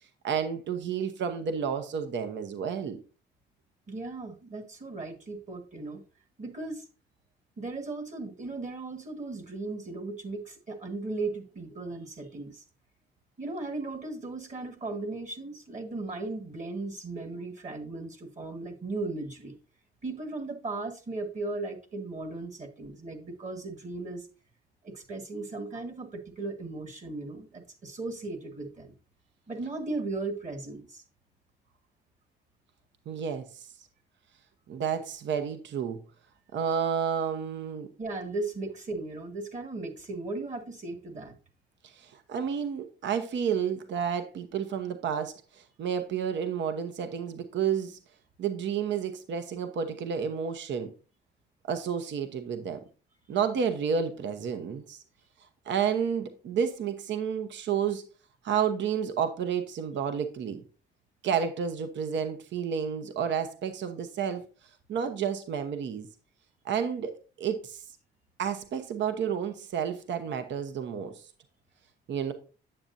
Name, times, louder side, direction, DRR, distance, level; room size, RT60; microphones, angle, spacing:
voice 1, 0.2-3.0 33.1-33.7 34.7-36.0 36.5-37.9 41.8-48.0 48.4-50.9 51.7-52.8 53.3-55.0 55.7-58.0 58.4-60.6 61.2-64.4 64.9-66.1 66.6-67.1 67.4-67.8 68.4-71.2 72.1-72.3, right 7 dB, 65° right, 0.9 m, -30 dB
voice 2, 3.9-6.0 6.4-6.9 7.6-12.6 13.4-19.6 20.0-24.3 24.8-28.9 29.5-31.0 38.0-41.3, right 3 dB, 40° right, 1.6 m, -37 dB
8.6 x 7.4 x 2.6 m
cardioid pair, 90°, 20 cm